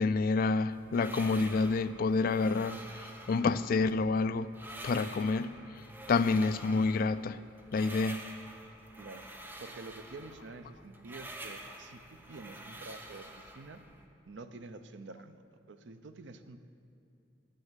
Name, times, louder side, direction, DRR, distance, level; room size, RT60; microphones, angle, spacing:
voice 1, 0.0-4.5 4.8-5.5 6.1-7.4 7.7-8.2, left 4 dB, 50° left, 14 dB, 0.3 m, -28 dB
sound 1, 0.7-14.1, right 1 dB, 10° right, 0.7 m, -48 dB
voice 2, 9.6-13.8 14.3-15.4 15.7-16.6, right 3 dB, 80° right, 9 dB, 0.6 m, -48 dB
10.0 x 6.4 x 7.4 m, 2.8 s
head